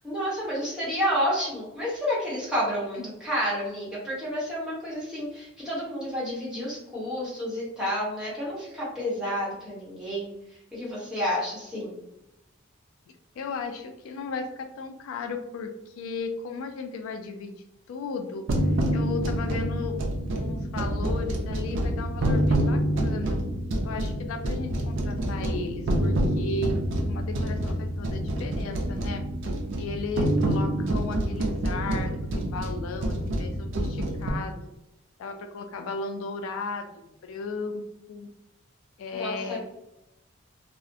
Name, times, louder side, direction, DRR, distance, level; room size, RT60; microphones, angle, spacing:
voice 1, 0.0-10.3 10.7-12.0 39.1-39.6, equal, 5° right, -8 dB, 0.9 m, -30 dB
voice 2, 13.4-17.5 17.9-20.0 20.3-23.4 23.8-26.7 27.1-29.2 29.7-34.6 35.2-37.8 38.1-38.3 39.0-39.6, left 4 dB, 80° left, 7 dB, 0.3 m, -35 dB
sound 1, 18.5-34.3, right 1 dB, 60° right, 0.4 m, -27 dB
2.4 x 2.0 x 2.6 m, 0.87 s
head